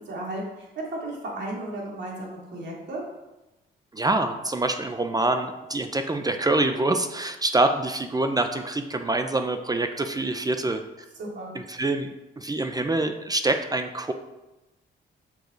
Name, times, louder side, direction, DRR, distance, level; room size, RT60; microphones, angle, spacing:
voice 1, 0.1-3.0 11.2-11.5, right 1 dB, 60° right, -3 dB, 2.8 m, -34 dB
voice 2, 3.9-10.8 11.5-14.1, right 2 dB, 20° right, 7 dB, 0.6 m, -25 dB
7.2 x 6.4 x 3.9 m, 1.0 s
cardioid pair, 90°, 20 cm